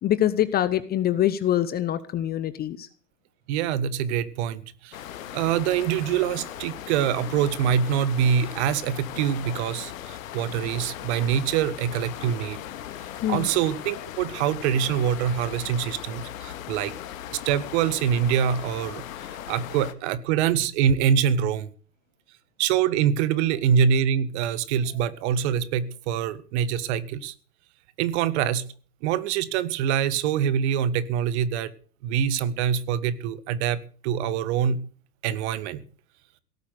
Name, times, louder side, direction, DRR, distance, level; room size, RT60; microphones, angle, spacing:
voice 1, 0.0-2.9 13.2-13.5, left 12 dB, 20° left, 15 dB, 0.8 m, -24 dB
voice 2, 3.5-5.0 5.3-12.6 13.3-16.9 17.3-19.0 19.5-21.7 22.6-27.3 28.0-28.6 29.0-31.7 32.0-34.8 35.2-35.8, right 8 dB, 45° right, 15 dB, 1.7 m, -25 dB
sound 1, 4.9-19.9, left 11 dB, 55° left, 1.9 m, -38 dB
17.5 x 8.3 x 8.4 m, 0.40 s
hypercardioid pair, 110°, 48 cm